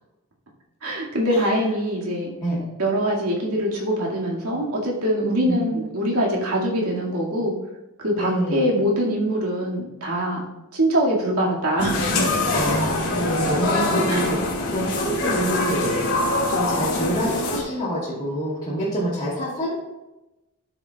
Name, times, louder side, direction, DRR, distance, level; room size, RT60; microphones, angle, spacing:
voice 1, 0.8-2.3 2.8-7.6 8.0-10.4 10.7-12.2 14.1-14.3, equal, 75° right, -3 dB, 2.1 m, -23 dB
voice 2, 5.2-5.7 8.2-8.7 12.5-14.4 14.6-16.0 16.5-19.7, right 1 dB, 20° left, -11 dB, 2.5 m, -26 dB
sound 1, 11.8-17.6, left 2 dB, 70° left, 2.0 m, -24 dB
12.5 x 6.8 x 2.3 m, 0.98 s
head